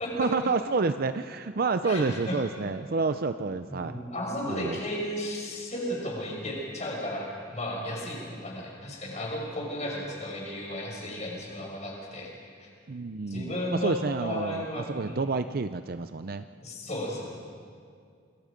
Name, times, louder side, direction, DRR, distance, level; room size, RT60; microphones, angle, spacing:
voice 1, 0.2-4.0 4.5-4.8 12.9-16.5, right 4 dB, 50° right, 10 dB, 0.5 m, -29 dB
voice 2, 1.8-2.4 3.4-12.3 12.6-12.7 13.3-15.2 16.6-17.3, left 1 dB, 35° left, -2 dB, 6.2 m, -34 dB
28.0 x 22.0 x 5.2 m, 2.2 s
head